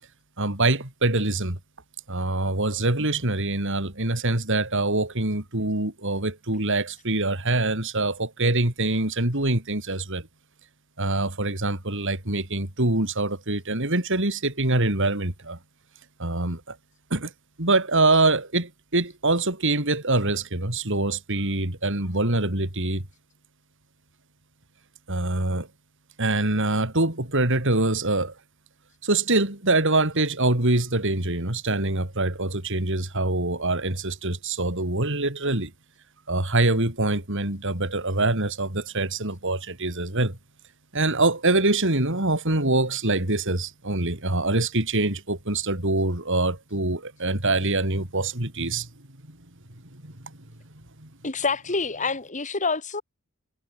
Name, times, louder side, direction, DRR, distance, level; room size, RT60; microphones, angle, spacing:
voice 1, 0.4-1.6 2.1-10.3 11.0-15.6 16.2-16.8 17.1-17.3 17.6-23.0 25.1-25.7 26.2-28.3 29.0-35.7 36.3-40.4 40.9-48.9 49.3-49.4 50.0-50.3 51.0-51.1, right 2 dB, 60° right, 4.3 m, -24 dB
voice 2, 51.2-53.0, left 4 dB, 35° left, 2.8 m, -27 dB
head